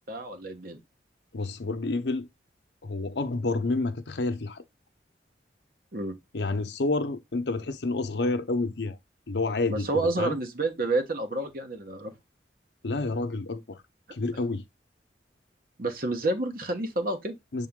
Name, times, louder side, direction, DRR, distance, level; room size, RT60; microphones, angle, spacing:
voice 1, 0.1-0.8 5.9-6.1 9.7-12.1 15.8-17.3, right 2 dB, 55° right, 1.2 m, -29 dB
voice 2, 1.3-2.3 2.8-4.6 6.3-9.0 9.3-10.4 12.8-13.8 14.1-14.6 17.5-17.7, left 3 dB, 75° left, 0.8 m, -29 dB
7.1 x 3.6 x 3.7 m
head